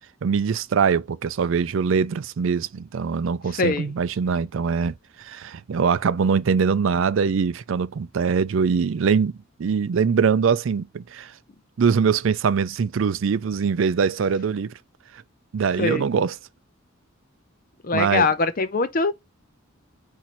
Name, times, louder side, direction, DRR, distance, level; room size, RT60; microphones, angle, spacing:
voice 1, 0.2-9.3 9.6-11.3 11.8-14.8 15.5-16.4 17.9-18.3, right 6 dB, 70° right, 0.4 m, -22 dB
voice 2, 3.6-3.9 15.8-16.0 17.8-19.1, left 3 dB, 40° left, 0.6 m, -22 dB
4.4 x 2.6 x 4.2 m
head